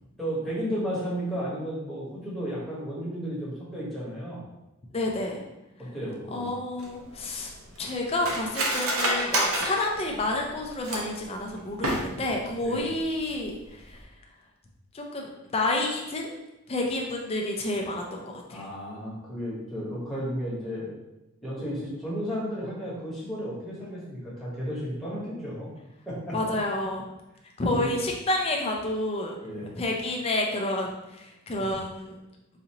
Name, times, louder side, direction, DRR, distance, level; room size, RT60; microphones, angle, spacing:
voice 1, 0.2-4.4 5.8-6.5 12.6-12.9 18.5-20.9 21.4-25.7 26.1-26.4 27.6-27.9 29.4-29.7 31.6-31.7, equal, ahead, -8 dB, 1.1 m, -33 dB
voice 2, 4.9-5.4 6.3-7.5 7.8-13.6 13.9-14.0 14.9-16.3 16.7-18.6 26.3-27.0 27.6-29.4 29.7-32.2, left 2 dB, 25° left, 1 dB, 0.5 m, -29 dB
Cutlery silverware, 6.8-11.2 11.7-12.4 12.7-12.8 13.2-13.5 13.8-14.0, right 1 dB, 75° right, 0.8 m, -29 dB
4.1 x 2.6 x 2.8 m, 0.95 s
head